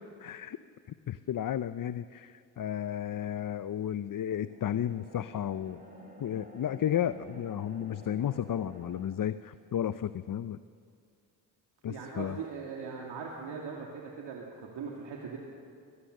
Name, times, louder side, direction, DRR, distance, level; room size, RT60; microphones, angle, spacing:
voice 1, 0.2-0.6 1.1-5.8 6.2-10.6 11.8-12.4, left 10 dB, 50° left, 13 dB, 0.7 m, -33 dB
sound 1, 4.4-9.1, right 1 dB, 20° right, 7.0 m, -51 dB
voice 2, 11.9-15.4, right 5 dB, 75° right, -2 dB, 2.6 m, -40 dB
23.0 x 19.5 x 6.7 m, 2.2 s
supercardioid pair, 50°, 43 cm